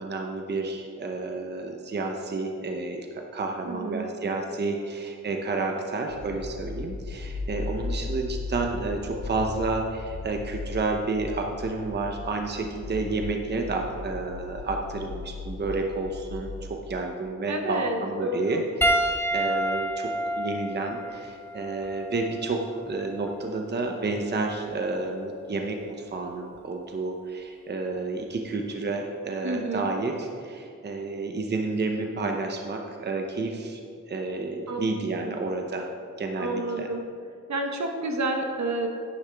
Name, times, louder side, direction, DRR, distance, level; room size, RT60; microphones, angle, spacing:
voice 1, 0.0-3.1 3.3-33.8 34.1-35.9 36.2-36.9, right 3 dB, 35° right, 2 dB, 0.7 m, -30 dB
voice 2, 3.7-4.1 17.5-18.6 29.4-29.9 34.7-35.4 36.4-37.0 37.5-38.9, right 2 dB, 70° right, 3 dB, 1.1 m, -30 dB
sound 1, 6.1-16.7, left 3 dB, 55° left, 0.9 m, -37 dB
Piano, 18.8-23.5 24.4-24.6 26.5-26.6, right 1 dB, 10° left, 0.6 m, -29 dB
10.5 x 9.8 x 3.4 m, 2.4 s
wide cardioid pair, 160°, 29 cm